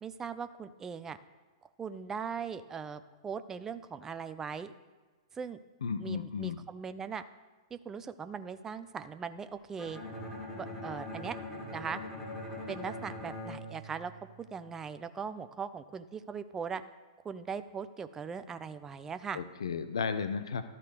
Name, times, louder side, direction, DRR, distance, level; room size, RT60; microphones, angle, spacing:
voice 1, 0.0-1.2 1.8-4.7 5.3-5.6 6.0-7.2 7.7-10.0 10.6-11.4 11.7-12.0 12.7-14.1 14.4-16.8 17.2-19.4, right 6 dB, 15° right, 12 dB, 0.4 m, -39 dB
voice 2, 5.8-6.6 19.3-20.6, left 6 dB, 70° left, 11 dB, 0.5 m, -34 dB
Bowed string instrument, 9.8-14.7, left 1 dB, 5° left, 2.2 m, -42 dB
12.0 x 4.1 x 6.6 m, 1.3 s
figure-of-eight pair, 105°, 3 cm